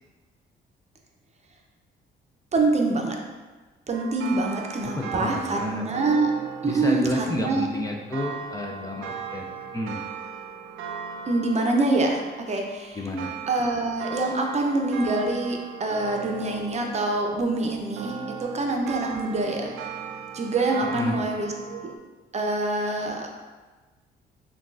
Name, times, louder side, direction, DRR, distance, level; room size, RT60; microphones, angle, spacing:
voice 1, 2.5-3.2 3.9-6.3 6.6-7.7 11.3-13.0 13.5-19.7 20.3-21.8 22.3-23.3, right 2 dB, 35° right, 1 dB, 0.6 m, -25 dB
sound 1, 3.9-22.0, right 6 dB, 80° right, 0.4 m, -38 dB
voice 2, 4.8-5.9 6.6-10.0 13.0-13.3 20.8-21.2, left 1 dB, 15° left, 0 dB, 0.4 m, -31 dB
6.2 x 2.3 x 2.4 m, 1.3 s
cardioid pair, 90°, 20 cm